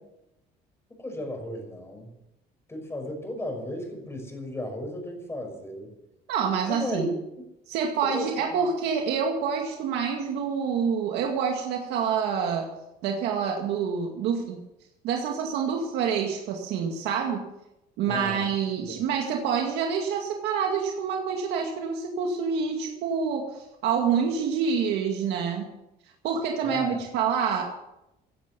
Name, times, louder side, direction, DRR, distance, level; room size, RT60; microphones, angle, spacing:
voice 1, 1.0-2.1 2.7-5.9 6.7-7.1 8.0-8.6 18.1-18.5 18.8-19.0 26.6-27.0, left 1 dB, 15° left, 3 dB, 5.7 m, -35 dB
voice 2, 6.3-7.1 7.7-12.7 13.0-14.6 15.0-17.4 18.0-25.7 26.2-27.7, right 6 dB, 85° right, 2 dB, 2.1 m, -27 dB
16.0 x 10.5 x 7.0 m, 0.89 s
cardioid pair, 110°, 17 cm